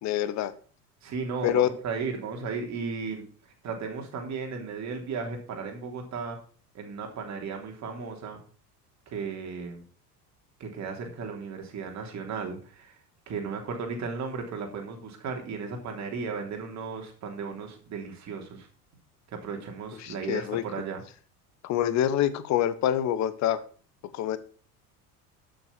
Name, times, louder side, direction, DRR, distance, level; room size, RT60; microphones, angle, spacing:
voice 1, 0.0-0.5 1.4-1.7 20.0-20.6 21.6-23.6 24.1-24.4, left 11 dB, 35° left, 15 dB, 1.1 m, -26 dB
voice 2, 1.0-3.3 3.6-6.4 6.7-8.4 9.1-9.8 10.6-12.9 13.3-18.7 19.3-21.0, right 5 dB, 35° right, 2 dB, 3.3 m, -35 dB
12.0 x 6.4 x 6.1 m, 0.42 s
figure-of-eight pair, 70°, 47 cm